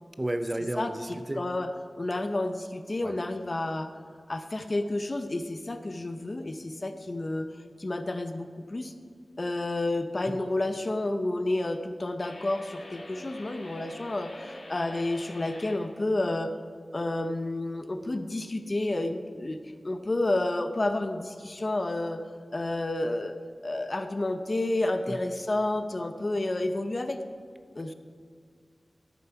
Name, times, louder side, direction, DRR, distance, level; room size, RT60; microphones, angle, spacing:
voice 1, 0.2-1.5 3.0-3.2 10.3-10.4 25.1-25.2, right 1 dB, 20° right, 9 dB, 0.5 m, -32 dB
voice 2, 0.8-1.7 2.0-4.0 4.3-7.5 7.8-8.9 9.4-16.5 16.9-22.2 22.5-23.3 23.6-27.2 27.8-27.9, left 2 dB, 40° left, 9 dB, 0.6 m, -30 dB
sound 1, 12.2-15.8, left 1 dB, 65° left, 1.5 m, -45 dB
13.0 x 7.0 x 4.6 m, 2.1 s
wide cardioid pair, 95°, 0 cm